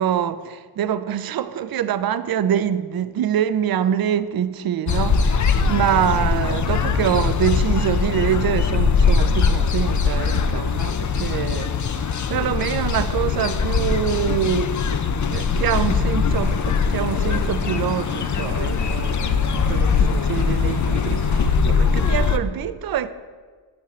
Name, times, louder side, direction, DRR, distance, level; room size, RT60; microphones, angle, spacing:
voice 1, 0.0-11.8 12.3-14.8 15.3-23.1, right 10 dB, 50° right, 0.5 m, -25 dB
sound 1, 4.9-22.4, left 5 dB, 40° left, 0.5 m, -21 dB
Stream, 16.3-21.4, left 2 dB, 60° left, 1.9 m, -41 dB
8.7 x 5.8 x 3.1 m
cardioid pair, 45°, 49 cm